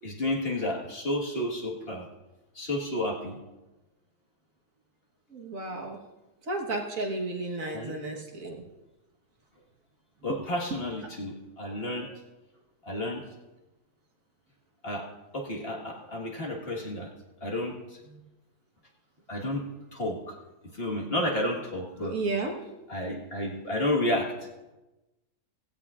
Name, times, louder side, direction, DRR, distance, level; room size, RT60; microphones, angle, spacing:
voice 1, 0.0-2.1 2.5-3.4 7.7-8.0 10.2-12.2 12.8-13.2 14.8-17.1 17.4-18.0 19.3-19.6 19.9-20.3 20.7-22.2 22.9-24.3, left 1 dB, 35° left, -1 dB, 1.7 m, -31 dB
voice 2, 5.3-6.0 6.5-8.6 22.1-22.5, right 2 dB, 55° right, 1 dB, 1.7 m, -32 dB
16.5 x 16.0 x 2.4 m, 1.0 s
omnidirectional pair, 1.8 m